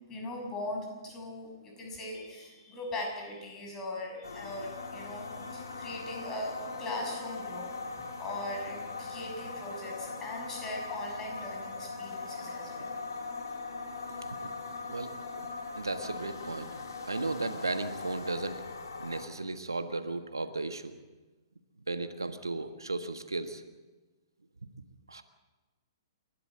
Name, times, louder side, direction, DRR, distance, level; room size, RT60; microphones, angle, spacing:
voice 1, 0.1-6.5 6.8-7.7 8.2-12.9, left 1 dB, 20° left, 1 dB, 6.6 m, -40 dB
sound 1, 4.2-19.3, left 4 dB, 65° left, 3.0 m, -40 dB
voice 2, 15.7-16.8 17.0-18.6 19.0-20.9 21.9-23.6 25.1-25.2, right 3 dB, 80° right, 9 dB, 1.5 m, -35 dB
28.5 x 12.5 x 7.8 m, 1.2 s
figure-of-eight pair, 115°, 2 cm